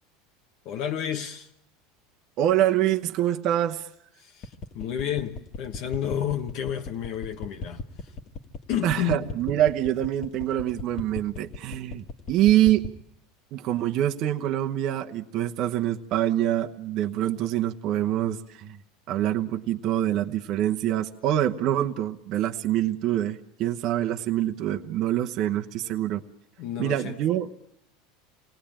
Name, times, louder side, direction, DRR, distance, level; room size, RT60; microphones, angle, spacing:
voice 1, 0.6-1.5 4.2-8.1 8.7-9.3 25.8-26.0 26.6-27.2, left 10 dB, 55° left, 1.2 m, -31 dB
voice 2, 2.4-3.9 8.8-12.8 13.5-18.8 19.1-26.2 26.8-27.5, right 12 dB, 50° right, 1.0 m, -25 dB
sound 1, 4.4-13.0, left 3 dB, 40° left, 1.8 m, -36 dB
27.0 x 18.5 x 8.8 m
supercardioid pair, 120°, 0 cm